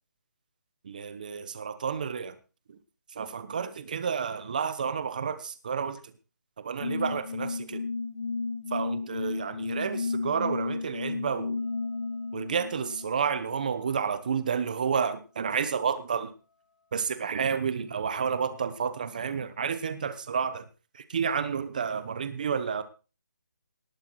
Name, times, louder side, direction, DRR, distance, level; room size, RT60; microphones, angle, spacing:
voice 1, 0.8-2.3 3.2-6.0 6.6-7.8 8.7-11.6 12.3-16.3 16.9-20.6 21.1-22.8, right 6 dB, 25° right, 13 dB, 1.0 m, -30 dB
sound 1, 6.8-13.8, left 4 dB, 55° left, 2.4 m, -33 dB
18.5 x 8.1 x 4.8 m, 0.35 s
hypercardioid pair, 180°, 10 cm